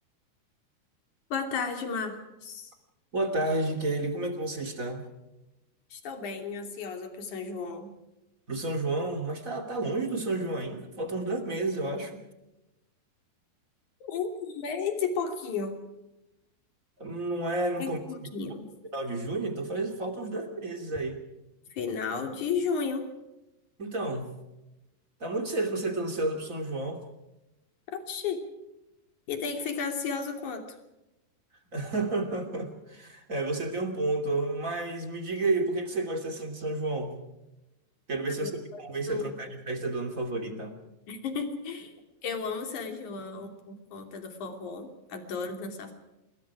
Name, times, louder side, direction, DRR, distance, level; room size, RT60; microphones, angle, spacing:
voice 1, 1.3-2.7 5.9-7.9 14.0-15.7 17.8-18.8 21.7-23.1 27.9-28.4 29.3-30.6 38.4-38.8 39.1-39.4 41.1-41.9 42.2-45.9, left 5 dB, 50° left, 5 dB, 4.0 m, -33 dB
voice 2, 3.1-5.0 8.5-12.2 17.0-18.0 18.9-21.2 23.8-24.4 25.2-27.0 31.7-37.2 38.1-40.7, right 2 dB, 25° right, 5 dB, 2.6 m, -31 dB
28.0 x 21.0 x 4.9 m, 0.96 s
omnidirectional pair, 4.7 m